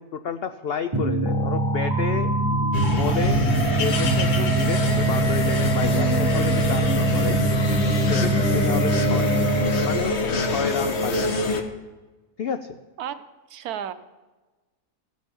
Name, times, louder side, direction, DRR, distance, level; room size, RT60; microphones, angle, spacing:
voice 1, 0.0-2.3 3.0-3.4 3.8-7.4 8.0-9.3 9.8-11.4 12.4-12.7, left 7 dB, 75° left, 9 dB, 0.5 m, -30 dB
sound 1, 0.9-10.2, right 3 dB, 20° right, 0.7 m, -23 dB
sound 2, 2.7-11.6, left 3 dB, 50° left, 1.2 m, -25 dB
voice 2, 13.5-13.9, right 9 dB, 75° right, 12 dB, 1.2 m, -32 dB
15.5 x 6.2 x 7.0 m, 1.2 s
omnidirectional pair, 1.7 m